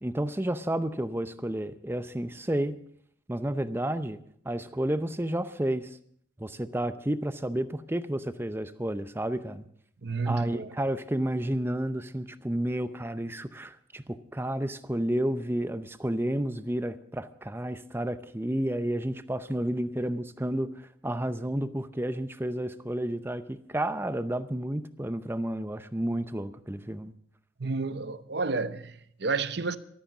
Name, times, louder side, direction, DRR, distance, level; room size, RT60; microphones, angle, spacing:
voice 1, 0.0-2.8 3.3-4.2 4.4-6.0 6.4-9.6 10.3-27.1, right 1 dB, 10° right, 0.6 m, -31 dB
voice 2, 10.0-10.7 27.6-29.8, right 4 dB, 55° right, 0.8 m, -31 dB
14.5 x 13.0 x 6.0 m
head